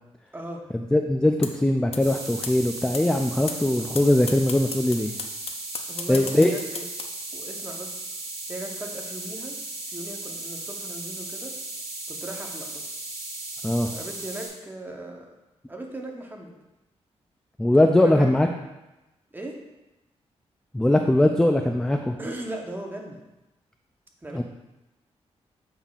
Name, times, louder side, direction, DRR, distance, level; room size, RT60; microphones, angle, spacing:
voice 1, 0.9-5.1 6.1-6.5 13.6-13.9 17.6-18.5 20.7-22.2 24.3-24.4, left 1 dB, 5° left, 4 dB, 0.3 m, -21 dB
sound 1, 1.4-1.5 1.9-2.0 2.4-2.5 2.9-3.0 3.5-3.6 3.9-4.0 4.3-7.0, left 6 dB, 55° left, 0.5 m, -32 dB
sound 2, 2.0-14.5, right 2 dB, 65° right, 1.9 m, -36 dB
voice 2, 5.9-6.9 7.3-8.1 8.5-9.6 9.9-12.9 13.9-15.3 15.7-16.5 18.0-18.3 19.3-19.6 22.2-23.2 24.2-24.4, right 1 dB, 15° right, 1 dB, 0.9 m, -38 dB
7.0 x 5.6 x 2.4 m, 0.99 s
wide cardioid pair, 115°, 12 cm